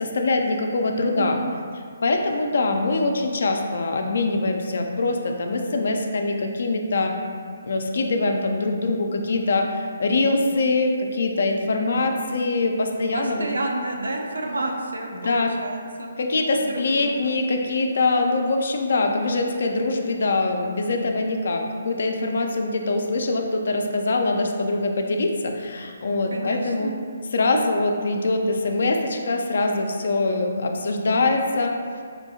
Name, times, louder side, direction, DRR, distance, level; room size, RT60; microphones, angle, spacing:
voice 1, 0.0-1.4 2.0-7.2 7.6-13.5 15.1-15.5 16.2-26.9 27.3-31.8, left 2 dB, 60° left, 3 dB, 0.4 m, -23 dB
voice 2, 1.2-1.5 13.1-16.1 16.5-17.3 26.3-26.9, right 2 dB, 75° right, 1 dB, 0.5 m, -30 dB
4.3 x 2.7 x 2.7 m, 2.1 s
figure-of-eight pair, 140°, 0 cm